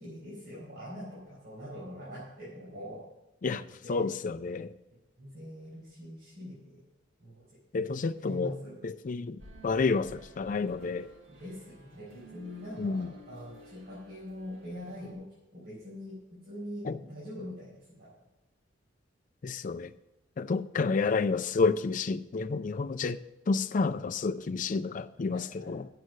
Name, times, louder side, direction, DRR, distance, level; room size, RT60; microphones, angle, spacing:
voice 1, 0.0-3.0 3.5-4.1 5.2-6.8 7.2-7.4 7.8-8.8 11.3-15.2 15.5-18.1 25.3-25.7, equal, 60° right, 4.3 m, -43 dB
voice 2, 3.9-4.7 7.7-8.6 8.8-11.1 12.8-13.1 16.8-17.0 19.4-19.9 20.4-23.2 23.5-25.9, left 4 dB, 45° left, 0.4 m, -30 dB
sound 1, 9.4-15.1, right 1 dB, 85° right, 2.8 m, -53 dB
7.9 x 7.7 x 7.1 m
head